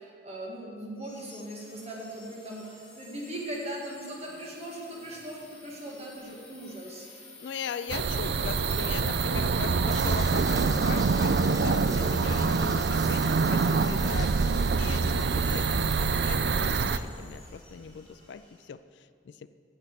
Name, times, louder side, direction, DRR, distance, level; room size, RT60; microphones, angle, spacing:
voice 1, 0.0-2.7 2.9-7.2, right 1 dB, 35° right, -2 dB, 1.8 m, -39 dB
sound 1, 1.0-18.6, left 2 dB, 5° left, 2.0 m, -51 dB
voice 2, 7.4-19.5, left 6 dB, 70° left, 11 dB, 0.4 m, -40 dB
sound 2, 7.9-17.0, right 4 dB, 60° right, 0.4 m, -25 dB
sound 3, 9.9-16.7, right 3 dB, 20° right, 0.7 m, -44 dB
9.9 x 7.1 x 8.1 m, 2.6 s
head